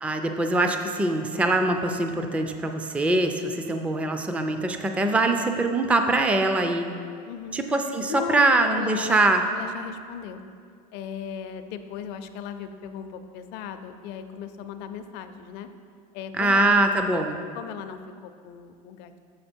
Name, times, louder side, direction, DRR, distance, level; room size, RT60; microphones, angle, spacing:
voice 1, 0.0-6.9 7.5-9.4 16.4-17.4, right 2 dB, 5° right, 6 dB, 0.4 m, -23 dB
voice 2, 7.2-7.6 8.1-9.2 9.5-10.4 10.9-15.7 16.1-16.9 17.1-17.3 17.5-19.2, left 7 dB, 60° left, 8 dB, 0.6 m, -37 dB
6.7 x 6.5 x 4.4 m, 2.2 s
supercardioid pair, 120°, 20 cm